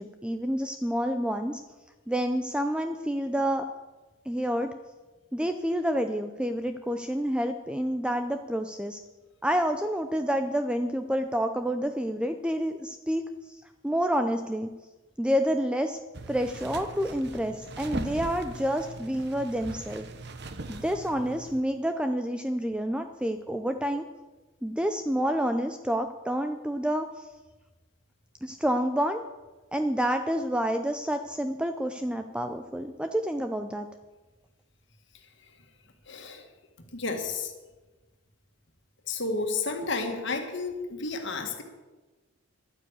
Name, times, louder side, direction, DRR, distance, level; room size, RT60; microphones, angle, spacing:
voice 1, 0.0-1.6 2.1-3.7 4.3-4.7 5.3-9.0 9.4-14.7 15.2-16.0 16.3-20.1 20.7-24.1 24.6-27.3 28.4-29.2 29.7-33.9, equal, 5° right, 7 dB, 0.4 m, -28 dB
sound 1, 16.1-21.6, right 2 dB, 50° right, 1.0 m, -40 dB
voice 2, 36.1-36.4 36.9-37.5 39.1-41.6, left 3 dB, 55° left, 4 dB, 1.9 m, -31 dB
12.0 x 9.6 x 8.2 m, 1.2 s
head